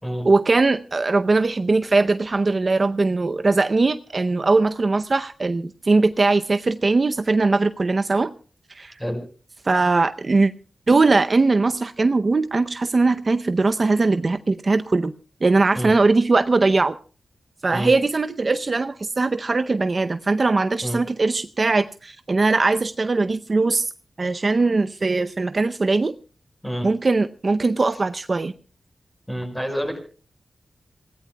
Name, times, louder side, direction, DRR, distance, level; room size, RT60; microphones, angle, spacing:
voice 1, 0.2-8.3 8.7-8.9 9.6-10.5 10.9-15.1 15.4-17.0 17.6-23.9 24.2-26.1 26.8-28.5, right 3 dB, 45° right, 10 dB, 0.6 m, -20 dB
voice 2, 29.3-30.0, equal, 10° left, 4 dB, 5.5 m, -28 dB
27.0 x 17.5 x 2.2 m, 0.39 s
wide cardioid pair, 95°, 0 cm